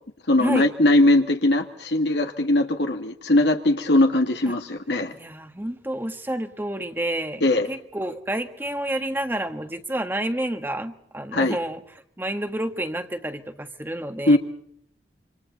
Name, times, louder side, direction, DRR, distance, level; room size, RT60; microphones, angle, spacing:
voice 1, 0.3-5.1 7.4-7.7 11.3-11.6 14.3-14.4, left 1 dB, 70° left, 4 dB, 1.9 m, -20 dB
voice 2, 5.1-14.4, right 1 dB, 10° right, 6 dB, 1.5 m, -29 dB
28.0 x 26.5 x 4.1 m, 0.69 s
head